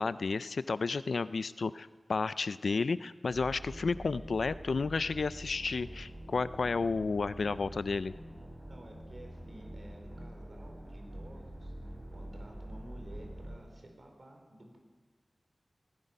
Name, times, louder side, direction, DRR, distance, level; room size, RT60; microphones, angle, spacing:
voice 1, 0.0-8.1, left 4 dB, 90° left, 16 dB, 0.4 m, -32 dB
sound 1, 3.3-13.6, right 1 dB, 30° right, 4.4 m, -46 dB
voice 2, 8.4-11.7 12.1-14.8, right 1 dB, 65° right, 2 dB, 3.5 m, -53 dB
16.5 x 15.0 x 5.4 m, 1.4 s
wide cardioid pair, 50°, 0 cm